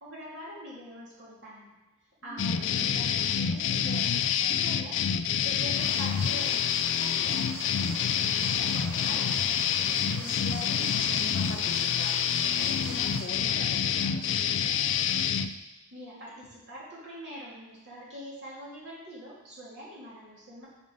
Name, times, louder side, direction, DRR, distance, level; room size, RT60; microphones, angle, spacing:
voice 1, 0.0-1.7 2.2-4.9 5.4-7.4 7.8-9.3 15.9-20.7, equal, 60° right, -7 dB, 2.6 m, -44 dB
voice 2, 2.2-2.9 10.1-12.2 12.5-14.8, left 2 dB, 45° left, 1 dB, 1.0 m, -42 dB
sound 1, 2.4-15.5, left 8 dB, 60° left, 0.4 m, -27 dB
sound 2, 5.7-13.2, left 1 dB, 10° left, 2.0 m, -40 dB
5.3 x 5.0 x 6.5 m, 1.1 s
head